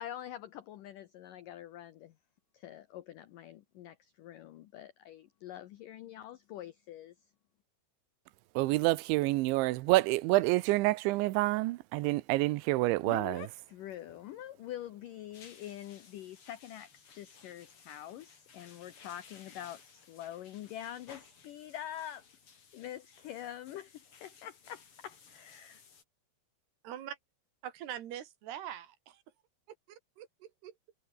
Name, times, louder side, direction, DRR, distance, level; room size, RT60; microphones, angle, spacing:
voice 1, 0.0-2.1 2.5-7.2 13.1-22.2 22.7-25.8, left 12 dB, 90° left, 1.8 m, -45 dB
voice 2, 8.6-13.5, right 20 dB, 90° right, 3.1 m, -28 dB
sound 1, 15.3-26.0, left 6 dB, 35° left, 2.9 m, -58 dB
voice 3, 26.8-27.2 27.6-29.2 29.9-30.7, right 11 dB, 65° right, 3.8 m, -43 dB
omnidirectional pair, 5.3 m